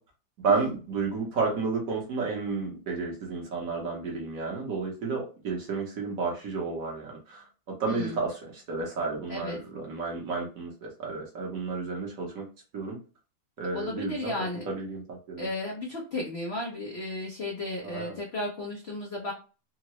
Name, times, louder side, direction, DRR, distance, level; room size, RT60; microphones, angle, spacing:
voice 1, 0.4-12.5 12.7-13.0 13.6-15.5 17.8-18.2, right 4 dB, 55° right, -1 dB, 1.1 m, -32 dB
voice 2, 7.9-8.2 9.3-9.6 13.7-14.6 15.4-19.3, left 2 dB, 80° left, -1 dB, 0.5 m, -34 dB
3.6 x 2.0 x 2.9 m, 0.35 s
omnidirectional pair, 2.0 m